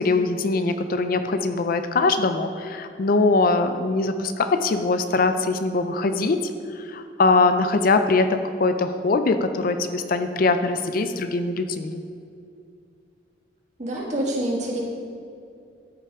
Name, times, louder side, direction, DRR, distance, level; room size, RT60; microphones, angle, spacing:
voice 1, 0.0-6.4 6.7-12.0, left 3 dB, 55° left, 9 dB, 0.5 m, -22 dB
voice 2, 13.8-14.8, right 1 dB, 40° right, -2 dB, 1.7 m, -26 dB
13.0 x 5.8 x 3.6 m, 2.5 s
head